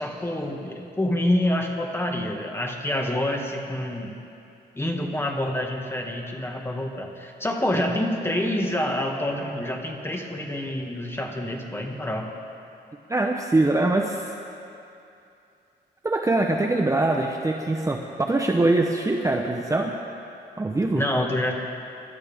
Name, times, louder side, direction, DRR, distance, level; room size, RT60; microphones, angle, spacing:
voice 1, 0.0-4.1 4.8-12.3 20.9-21.5, left 1 dB, 15° left, 1 dB, 1.7 m, -27 dB
voice 2, 13.1-14.3 16.0-19.9 20.6-21.0, right 2 dB, 15° right, 1 dB, 0.8 m, -23 dB
26.5 x 12.5 x 3.6 m, 2.6 s
cardioid pair, 105°, 19 cm